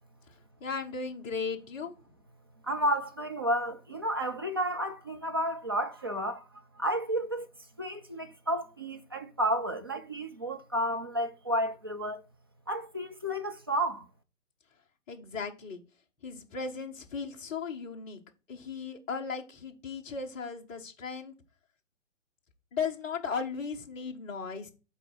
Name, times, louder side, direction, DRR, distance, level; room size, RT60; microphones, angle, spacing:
voice 1, 0.6-1.9 15.1-15.8 16.2-18.2 18.5-21.3 22.7-24.7, left 5 dB, 10° left, 0.7 m, -36 dB
voice 2, 2.6-7.5 7.8-12.2 12.7-14.1, equal, 20° right, 0.4 m, -31 dB
8.1 x 4.1 x 4.5 m
figure-of-eight pair, 130°, 38 cm